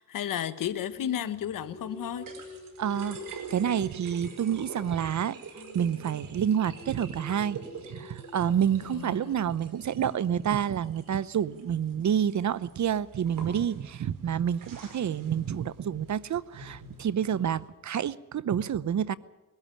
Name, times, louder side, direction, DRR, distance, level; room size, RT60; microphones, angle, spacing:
voice 1, 0.0-2.3 8.8-9.5, left 10 dB, 85° left, 1.2 m, -33 dB
sound 1, 0.6-17.7, right 5 dB, 85° right, 5.2 m, -48 dB
Singing, 1.0-5.3 5.5-11.5, left 2 dB, 30° left, 4.9 m, -49 dB
voice 2, 2.8-7.6 7.9-19.1, right 9 dB, 60° right, 0.9 m, -28 dB
21.5 x 13.0 x 9.9 m
cardioid pair, 75°, 32 cm